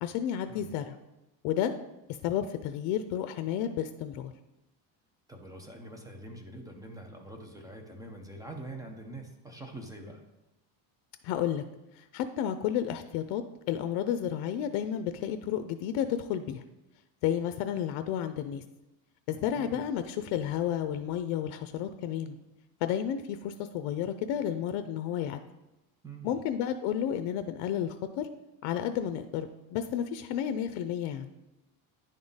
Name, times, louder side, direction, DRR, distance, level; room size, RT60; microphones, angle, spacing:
voice 1, 0.0-1.0 1.4-1.7 2.2-4.3 11.2-11.6 12.0-13.4 13.7-16.6 17.2-18.6 19.3-22.4 22.8-25.4 26.2-28.3 28.6-31.3, left 10 dB, 80° left, 10 dB, 0.5 m, -31 dB
voice 2, 5.3-10.2 19.3-19.9 26.0-26.4, right 2 dB, 10° right, 2 dB, 0.5 m, -45 dB
10.0 x 3.7 x 4.0 m, 0.96 s
cardioid pair, 165°, 41 cm